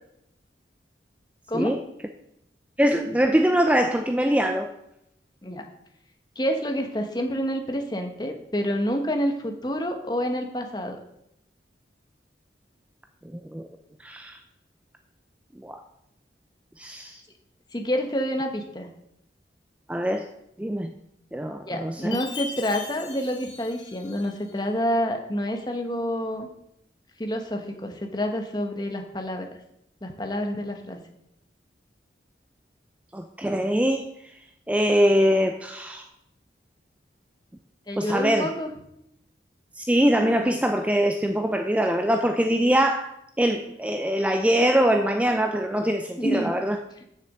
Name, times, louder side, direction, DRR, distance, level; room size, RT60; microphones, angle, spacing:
voice 1, 2.8-4.7 13.3-13.7 14.0-14.4 15.6-15.8 16.8-17.2 19.9-20.3 20.6-20.9 21.3-22.2 33.1-34.1 34.7-36.1 38.0-38.5 39.8-43.1 43.4-46.8, equal, 10° right, 5 dB, 0.4 m, -23 dB
voice 2, 6.4-11.0 17.7-18.9 21.7-26.5 27.2-29.5 30.0-31.0 37.9-38.7 46.2-46.5, equal, 25° left, 4 dB, 1.1 m, -28 dB
Chime, 22.1-24.6, left 4 dB, 85° left, 1.6 m, -39 dB
6.8 x 6.7 x 7.4 m, 0.79 s
head